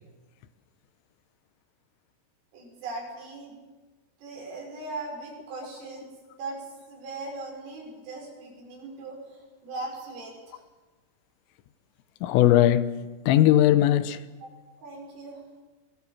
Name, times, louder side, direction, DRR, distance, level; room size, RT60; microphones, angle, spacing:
voice 1, 2.5-3.6 4.2-6.1 6.4-10.6 14.4-14.5 14.8-15.4, right 3 dB, 80° right, 8.4 m, -39 dB
voice 2, 12.2-14.2, left 12 dB, 85° left, 3.5 m, -20 dB
25.5 x 21.0 x 7.4 m
omnidirectional pair, 5.7 m